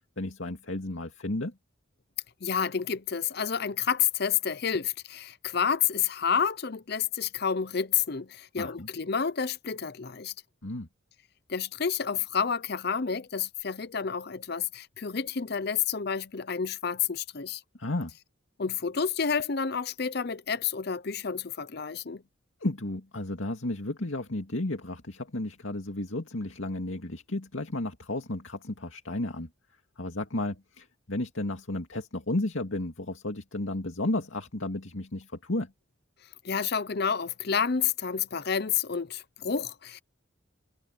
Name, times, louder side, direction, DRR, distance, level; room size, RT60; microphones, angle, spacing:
voice 1, 0.2-1.5 8.6-8.9 10.6-10.9 17.8-18.1 22.6-29.5 30.0-35.7, left 1 dB, 75° left, 2.3 m, -33 dB
voice 2, 2.4-10.3 11.5-17.6 18.6-22.2 36.4-40.0, left 7 dB, 50° left, 0.7 m, -29 dB
head